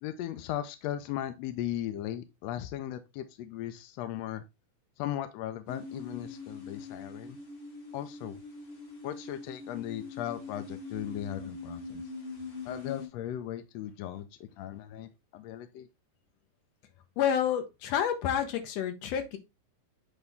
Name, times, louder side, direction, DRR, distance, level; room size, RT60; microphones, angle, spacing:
voice 1, 0.0-4.4 5.0-7.4 7.9-8.4 9.0-12.1 12.6-15.9, left 12 dB, 85° left, 1.5 m, -37 dB
sound 1, 5.7-13.1, left 3 dB, 45° left, 2.8 m, -43 dB
voice 2, 17.2-19.4, left 9 dB, 65° left, 1.9 m, -29 dB
8.2 x 3.4 x 3.4 m
omnidirectional pair, 3.7 m